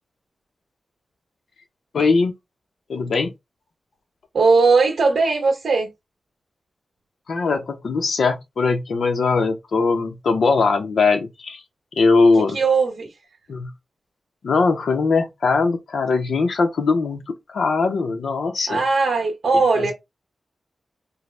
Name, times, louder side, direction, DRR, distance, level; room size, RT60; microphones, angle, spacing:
voice 1, 1.9-2.3 2.9-3.3 7.3-11.6 11.9-12.6 13.5-13.7 14.4-18.8, left 4 dB, 75° left, 0.6 m, -20 dB
voice 2, 4.3-5.9 12.3-13.1 18.7-19.9, right 4 dB, 75° right, 0.8 m, -18 dB
3.9 x 2.0 x 3.1 m
wide cardioid pair, 175°, 0 cm